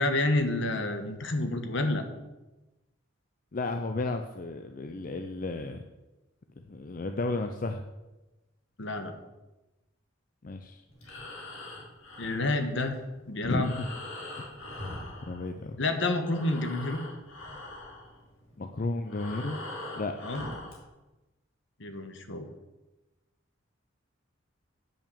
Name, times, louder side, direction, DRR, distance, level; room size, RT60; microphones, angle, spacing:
voice 1, 0.0-2.0 8.8-9.1 12.2-13.0 13.3-13.7 15.8-17.0 20.2-20.4 21.8-22.5, left 2 dB, 65° left, 6 dB, 1.2 m, -29 dB
voice 2, 3.5-5.8 6.6-7.8 10.4-10.8 13.4-13.9 15.3-15.8 18.6-19.6 19.9-20.2, left 2 dB, 45° left, 6 dB, 0.5 m, -33 dB
Breathing, 10.9-15.9 16.1-20.8, left 2 dB, 85° left, 2.5 m, -42 dB
8.8 x 5.9 x 6.9 m, 1.1 s
head